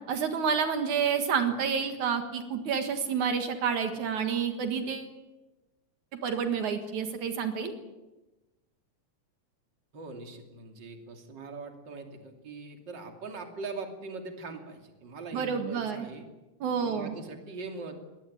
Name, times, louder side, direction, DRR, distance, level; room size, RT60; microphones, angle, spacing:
voice 1, 0.1-5.1 6.2-7.7 15.3-16.1 16.6-17.1, right 6 dB, 75° right, 6 dB, 3.1 m, -29 dB
voice 2, 9.9-16.3 16.8-18.0, right 3 dB, 35° right, 4 dB, 3.2 m, -41 dB
23.0 x 19.0 x 9.4 m, 1.1 s
omnidirectional pair, 3.4 m